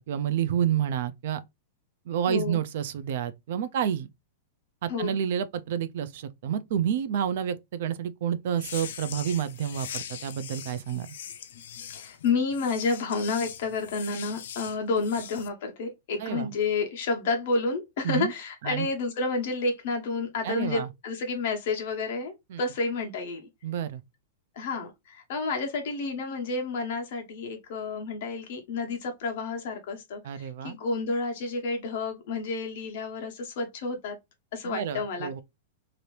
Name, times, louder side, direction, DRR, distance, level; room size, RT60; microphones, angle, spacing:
voice 1, 0.0-1.4 2.1-4.1 4.8-11.1 16.2-16.5 18.0-18.3 18.6-18.9 20.4-20.9 22.5-22.6 23.6-24.0 30.2-30.8 34.6-35.4, right 9 dB, 55° right, 0.4 m, -29 dB
voice 2, 2.3-2.6 4.9-5.2 11.9-23.5 24.6-34.2 34.5-35.4, left 4 dB, 50° left, 1.0 m, -30 dB
sound 1, 8.5-15.5, left 9 dB, 70° left, 0.5 m, -41 dB
2.9 x 2.6 x 3.1 m
supercardioid pair, 175°, 0 cm